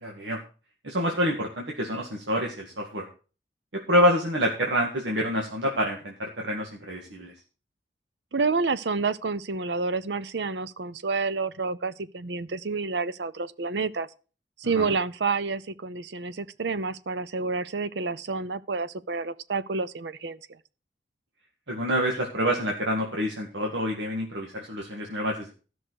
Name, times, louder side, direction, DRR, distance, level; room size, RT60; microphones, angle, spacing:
voice 1, 0.0-0.4 0.8-3.1 3.9-7.3 14.7-14.9 21.7-25.5, equal, 90° right, 1.9 m, -27 dB
voice 2, 8.3-14.1 14.6-20.4, right 4 dB, 70° right, 0.7 m, -29 dB
13.5 x 6.2 x 6.3 m
head